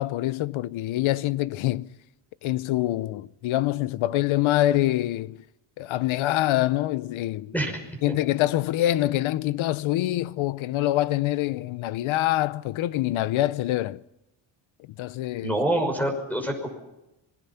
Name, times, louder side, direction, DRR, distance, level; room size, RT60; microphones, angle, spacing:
voice 1, 0.0-1.9 2.4-5.4 5.8-7.5 8.0-14.0 15.0-15.6, left 15 dB, 75° left, 0.9 m, -25 dB
voice 2, 15.4-16.7, right 1 dB, 5° left, 5.8 m, -26 dB
26.5 x 22.5 x 5.8 m
cardioid pair, 150°, 48 cm